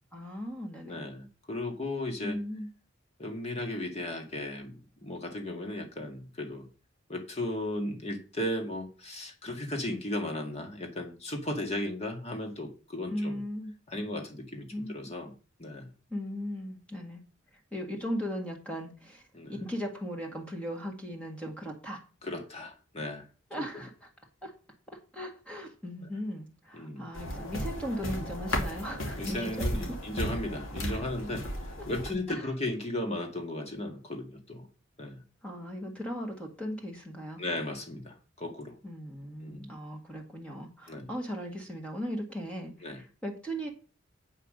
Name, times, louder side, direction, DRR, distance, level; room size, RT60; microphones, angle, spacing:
voice 1, 0.1-1.0 2.2-2.7 13.1-13.7 14.7-14.9 16.1-17.2 17.7-22.0 23.5-24.1 24.4-24.5 24.9-30.0 30.9-31.0 31.8-31.9 32.3-32.5 35.4-37.4 38.8-43.7, equal, 5° left, 1 dB, 1.6 m, -37 dB
voice 2, 0.8-2.4 3.2-6.7 7.1-13.4 13.9-15.3 15.6-15.9 19.3-19.6 22.2-23.3 26.7-27.1 29.2-34.7 35.0-35.2 37.4-38.8 39.4-39.7 40.9-41.1 42.8-43.0, left 1 dB, 35° left, 4 dB, 1.9 m, -36 dB
sound 1, 27.1-32.1, equal, 80° left, 2.7 m, -35 dB
8.3 x 5.6 x 6.5 m, 0.35 s
head